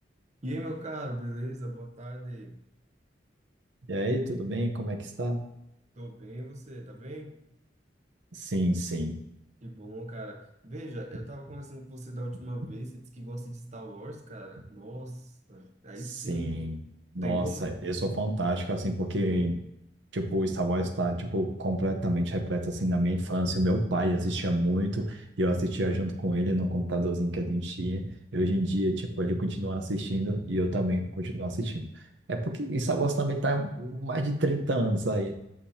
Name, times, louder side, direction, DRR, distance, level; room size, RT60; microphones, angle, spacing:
voice 1, 0.4-2.6 6.0-7.4 9.6-16.5 17.2-17.8, right 1 dB, 40° right, 4 dB, 1.0 m, -39 dB
voice 2, 3.9-5.4 8.3-9.1 16.3-16.8 17.1-19.6 20.1-32.0 32.3-35.3, right 1 dB, 85° right, 4 dB, 0.9 m, -28 dB
8.5 x 6.6 x 2.8 m, 0.86 s
head